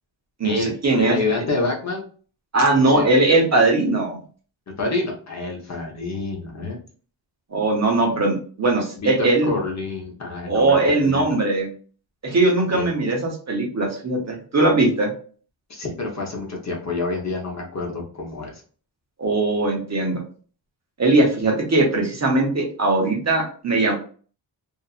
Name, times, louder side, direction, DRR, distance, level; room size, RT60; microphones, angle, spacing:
voice 1, 0.4-1.2 2.5-4.2 7.5-9.5 10.5-11.7 12.2-15.1 19.2-20.2 21.0-23.9, right 2 dB, 35° right, 0 dB, 0.9 m, -20 dB
voice 2, 1.0-2.0 2.7-3.1 4.8-6.8 9.0-11.2 12.7-12.9 15.7-18.6, left 3 dB, 35° left, -1 dB, 0.9 m, -27 dB
2.7 x 2.5 x 2.4 m, 0.41 s
wide cardioid pair, 105°, 45 cm